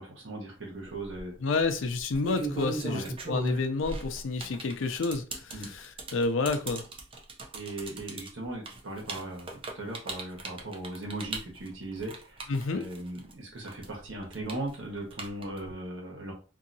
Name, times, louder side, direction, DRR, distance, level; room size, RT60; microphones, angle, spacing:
voice 1, 0.0-1.3 2.8-3.1 5.5-5.7 7.5-16.3, right 1 dB, 75° right, 1.3 m, -38 dB
sound 1, 0.9-1.2 2.0-13.3 13.6-15.7, right 2 dB, 30° right, 0.5 m, -37 dB
voice 2, 1.4-5.6 6.1-6.8 12.5-12.8, left 3 dB, 85° left, 0.5 m, -29 dB
2.8 x 2.7 x 2.6 m
head